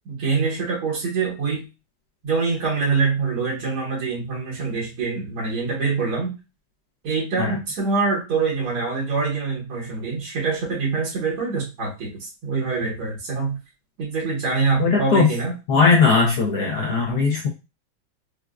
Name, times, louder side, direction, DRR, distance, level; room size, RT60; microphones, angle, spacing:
voice 1, 0.1-1.7 2.2-6.4 7.0-13.6 14.0-15.5, right 4 dB, 80° right, -4 dB, 2.0 m, -25 dB
voice 2, 14.8-15.3 15.7-17.5, left 4 dB, 75° left, 0 dB, 0.9 m, -18 dB
4.6 x 2.0 x 2.3 m, 0.27 s
omnidirectional pair, 2.2 m